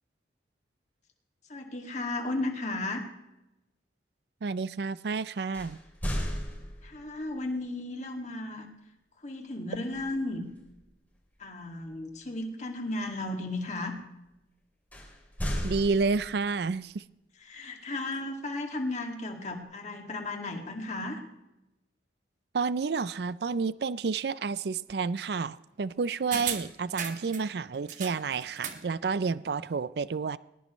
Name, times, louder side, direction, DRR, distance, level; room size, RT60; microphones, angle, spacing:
voice 1, 1.5-3.0 6.8-8.7 9.2-10.5 11.4-14.0 17.4-21.2, left 2 dB, 40° left, 3 dB, 2.2 m, -34 dB
voice 2, 4.4-5.8 15.6-17.0 22.5-30.4, right 4 dB, 60° right, 18 dB, 0.4 m, -30 dB
sound 1, 5.5-7.2 9.9-10.2 10.7-10.9 14.9-16.6, equal, 10° left, 2.8 m, -35 dB
sound 2, 26.3-27.5 27.9-28.9 29.2-29.3, right 7 dB, 45° right, 1.5 m, -36 dB
19.5 x 19.5 x 3.1 m, 0.94 s
head